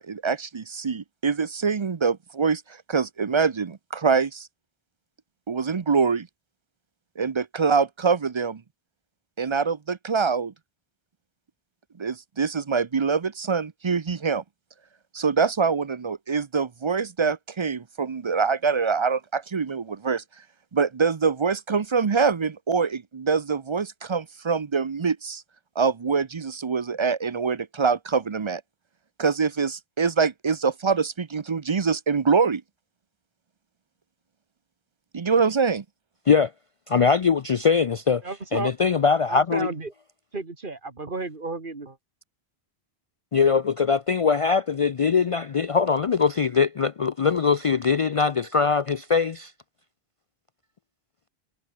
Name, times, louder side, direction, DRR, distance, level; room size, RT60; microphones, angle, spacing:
voice 1, 0.0-2.6 2.9-4.5 5.5-6.3 7.2-8.6 9.4-10.5 12.0-14.4 15.1-20.2 20.7-25.4 25.8-28.6 29.2-32.6 35.1-35.8, right 5 dB, 35° right, 0.5 m, -24 dB
voice 2, 36.9-38.2 38.5-39.7 43.3-49.5, left 5 dB, 50° left, 0.4 m, -22 dB
voice 3, 38.2-38.7 39.3-39.9 40.3-42.0, right 3 dB, 50° right, 2.4 m, -32 dB
omnidirectional pair, 1.1 m